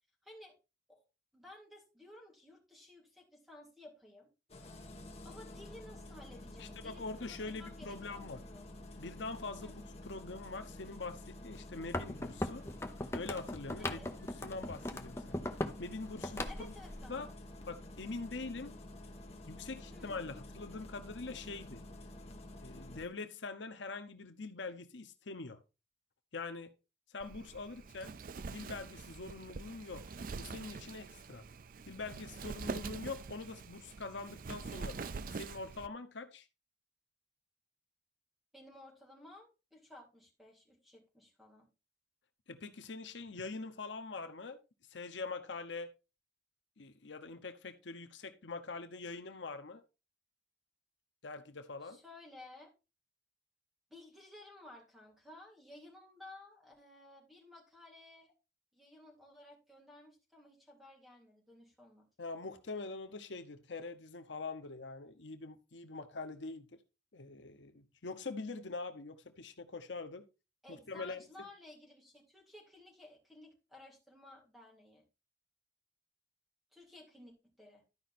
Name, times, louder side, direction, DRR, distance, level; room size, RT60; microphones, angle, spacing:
voice 1, 0.2-0.5 0.9-1.0 1.3-4.3 5.2-8.7 9.6-9.7 13.8-14.1 16.5-17.4 19.9-20.2 38.5-41.7 51.8-52.7 53.9-58.3 58.7-62.1 70.6-75.0 76.7-77.8, left 2 dB, ahead, 3.1 m, -55 dB
Engine starting, 4.5-23.1, left 1 dB, 35° left, 1.5 m, -50 dB
voice 2, 6.6-8.4 9.0-12.6 13.1-15.4 15.8-16.8 17.1-17.3 17.7-18.7 19.5-21.8 22.6-25.6 26.3-26.7 27.1-28.1 28.5-30.0 30.4-31.4 31.9-36.5 42.5-44.6 44.9-45.9 46.8-49.8 51.2-52.0 62.2-66.8 67.1-70.2 70.7-71.5, left 3 dB, 80° left, 0.9 m, -44 dB
sound 1, 11.8-15.8 16.1-17.0, left 1 dB, 15° left, 0.9 m, -39 dB
Wind, 27.2-35.9, right 4 dB, 50° right, 0.4 m, -45 dB
12.5 x 5.1 x 4.3 m
head